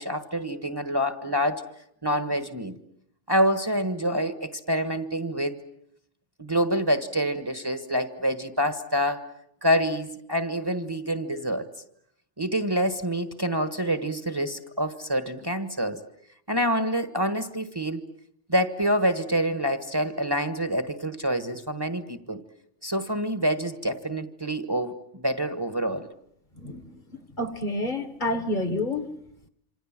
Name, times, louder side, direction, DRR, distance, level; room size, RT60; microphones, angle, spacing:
voice 1, 0.0-1.6 2.0-2.7 3.3-5.6 6.4-9.2 9.6-11.6 12.4-16.0 16.5-18.1 18.5-22.4 22.8-26.1, equal, 20° right, 8 dB, 1.4 m, -27 dB
voice 2, 26.6-27.0 27.4-29.1, left 1 dB, 45° left, 10 dB, 1.8 m, -29 dB
27.5 x 26.5 x 7.5 m, 0.73 s
omnidirectional pair, 1.2 m